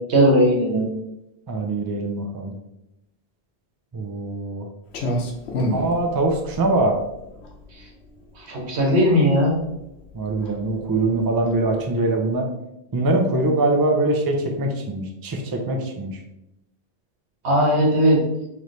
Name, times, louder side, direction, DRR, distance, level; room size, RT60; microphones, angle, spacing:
voice 1, 0.1-0.9 8.4-9.6 17.4-18.2, equal, 90° right, 0 dB, 1.3 m, -18 dB
voice 2, 1.5-2.5 3.9-4.7 5.7-7.0 10.1-12.5 12.9-16.2, right 2 dB, 30° right, 2 dB, 0.4 m, -23 dB
Clock, 4.9-12.3, equal, 85° left, 1.0 m, -31 dB
4.0 x 3.1 x 3.1 m, 0.88 s
omnidirectional pair, 1.1 m